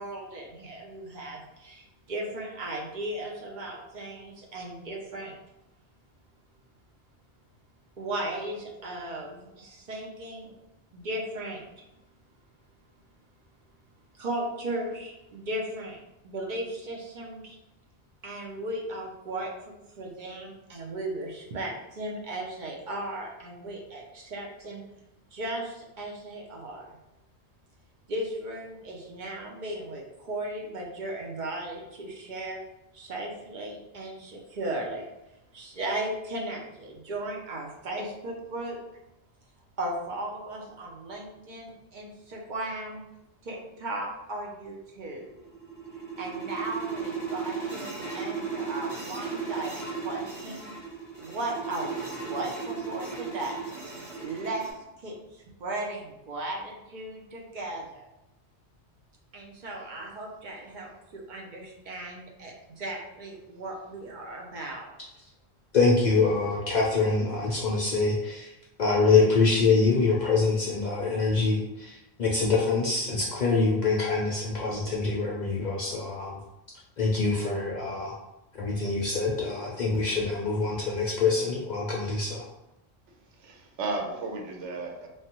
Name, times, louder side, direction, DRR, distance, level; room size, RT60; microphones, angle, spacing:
voice 1, 0.0-5.4 8.0-10.5 10.9-11.8 14.2-16.0 16.2-17.6 18.2-24.8 25.3-27.0 28.1-32.6 32.9-35.1 35.5-38.8 39.8-43.0 43.4-45.4 46.2-50.6 51.2-53.7 54.2-54.7 55.0-58.0 59.3-64.9, right 1 dB, 55° right, -1 dB, 0.6 m, -36 dB
sound 1, 45.3-54.7, right 5 dB, 30° right, 1.1 m, -36 dB
voice 2, 65.7-68.5 68.8-76.4 77.0-78.2 78.6-82.4, left 4 dB, 55° left, -3 dB, 0.5 m, -25 dB
voice 3, 83.1-85.1, right 3 dB, 90° right, 1 dB, 0.9 m, -34 dB
3.1 x 2.1 x 2.8 m, 0.91 s
omnidirectional pair, 1.2 m